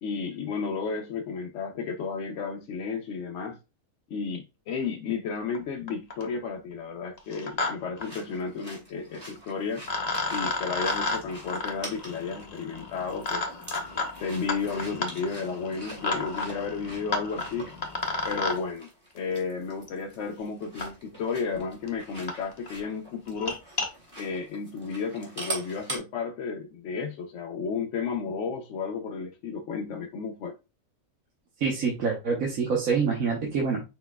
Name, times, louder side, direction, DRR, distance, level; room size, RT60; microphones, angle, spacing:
voice 1, 0.0-3.6 4.1-9.9 10.3-13.6 14.2-17.7 18.2-18.9 19.1-23.6 24.2-30.6, left 5 dB, 65° left, 0.8 m, -33 dB
sound 1, 5.5-5.6 5.9-6.3 7.2-7.7 8.0-8.1 9.4-9.5 9.9-18.6 19.9-20.0 20.8-20.9 21.6-21.7 21.9-22.0 22.3-22.4 22.7-22.9 23.3-23.9, left 3 dB, 35° left, 0.8 m, -32 dB
sound 2, 8.0-26.0, right 2 dB, 20° right, 1.9 m, -44 dB
voice 2, 31.6-33.8, right 5 dB, 70° right, 1.3 m, -26 dB
4.7 x 4.2 x 2.2 m
omnidirectional pair, 1.5 m